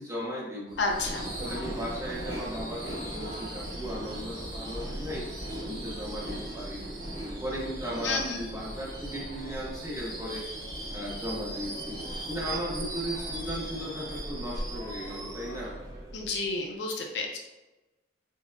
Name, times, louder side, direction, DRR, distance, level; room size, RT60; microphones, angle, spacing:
voice 1, 0.0-0.9 1.4-5.2 5.6-7.0 7.4-10.4 10.9-12.0 12.3-15.7, equal, 15° right, -5 dB, 0.9 m, -36 dB
Subway metro underground / Screech, 0.7-16.6, right 1 dB, 45° right, 1.4 m, -38 dB
voice 2, 0.8-1.3 8.0-8.4 16.1-17.4, left 3 dB, 65° left, 1 dB, 0.5 m, -30 dB
5.2 x 2.1 x 2.5 m, 1.0 s
head